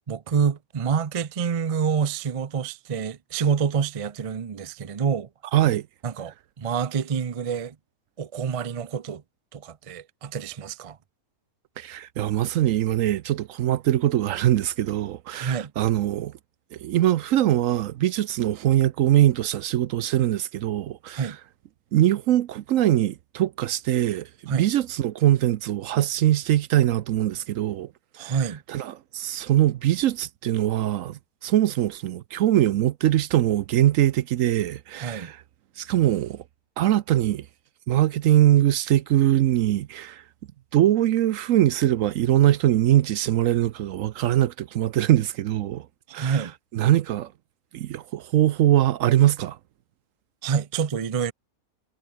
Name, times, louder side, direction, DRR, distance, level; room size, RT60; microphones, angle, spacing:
voice 1, 0.1-5.3 6.0-7.7 8.2-9.2 9.5-11.0 15.4-15.7 21.1-21.4 24.5-24.6 28.2-28.6 34.9-35.3 46.1-46.5 50.4-51.3, right 6 dB, 45° right, 0.4 m, -27 dB
voice 2, 5.5-5.9 11.8-16.3 16.7-21.3 21.9-27.9 28.2-28.4 28.7-35.4 35.8-36.4 36.8-37.5 37.9-40.2 40.7-45.9 46.1-46.4 46.7-47.3 47.7-49.6, right 13 dB, 70° right, 0.9 m, -22 dB
omnidirectional pair, 1.6 m